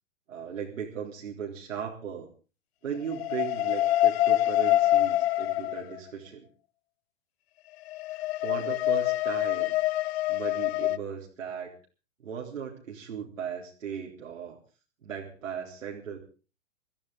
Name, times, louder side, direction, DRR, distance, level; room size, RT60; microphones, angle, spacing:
voice 1, 0.3-2.3 2.8-6.5 8.4-9.8 10.3-11.7 12.2-14.6 15.0-16.2, right 7 dB, 80° right, -2 dB, 3.9 m, -37 dB
sound 1, 3.1-6.0 7.9-11.0, left 15 dB, 55° left, 0.7 m, -25 dB
23.0 x 14.5 x 3.9 m, 0.35 s
hypercardioid pair, 125°, 38 cm